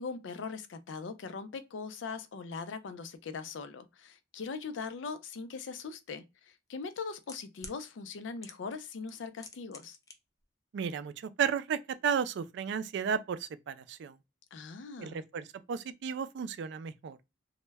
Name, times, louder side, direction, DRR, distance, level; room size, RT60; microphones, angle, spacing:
voice 1, 0.0-6.2 6.7-10.0 14.5-15.2, left 5 dB, 90° left, 0.4 m, -40 dB
sound 1, 5.8-5.9 6.8-7.8 8.4-8.8 9.1-10.1 10.4-10.5, left 4 dB, 20° left, 0.3 m, -47 dB
voice 2, 10.7-14.2 15.0-17.2, right 7 dB, 70° right, 0.3 m, -33 dB
2.1 x 2.1 x 3.3 m
head